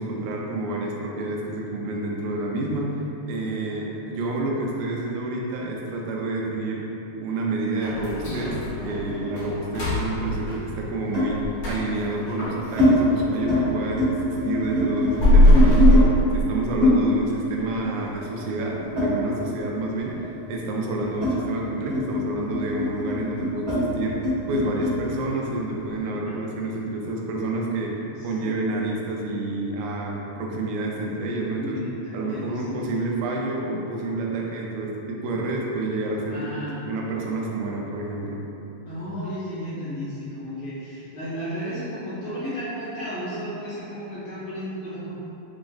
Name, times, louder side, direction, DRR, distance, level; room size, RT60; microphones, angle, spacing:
voice 1, 0.0-2.9 3.3-6.8 7.2-16.1 16.3-20.2 20.5-24.2 24.5-28.0 28.2-31.8 32.1-38.4, right 2 dB, 80° right, -2 dB, 1.9 m, -29 dB
sound 1, 7.8-13.7 14.1-17.0 17.3-17.4 17.9-18.0 18.5-18.9 19.2-19.3 19.8-19.9, equal, 60° left, 1.3 m, -22 dB
sound 2, 8.3-9.8 11.1-11.4 12.1-12.9 13.3-13.6 13.9-16.1 16.8-19.7 20.0-25.0, left 1 dB, 40° right, 1.4 m, -25 dB
voice 2, 28.0-28.6 31.5-33.0 36.3-36.8 38.9-45.1, equal, 80° left, -11 dB, 1.4 m, -34 dB
6.1 x 2.1 x 2.3 m, 2.9 s
omnidirectional pair, 3.6 m